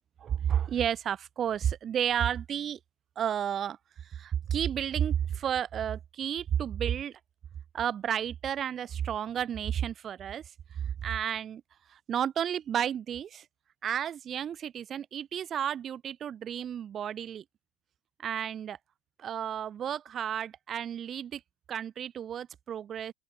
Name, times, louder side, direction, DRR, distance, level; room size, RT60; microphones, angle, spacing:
voice 1, 0.2-2.8 3.2-7.2 7.7-10.4 10.7-11.6 11.9-13.5 13.8-17.4 18.2-18.8 19.2-21.4 21.7-23.1, right 9 dB, 30° right, 0.9 m, -32 dB
cardioid pair, 150°, 0 cm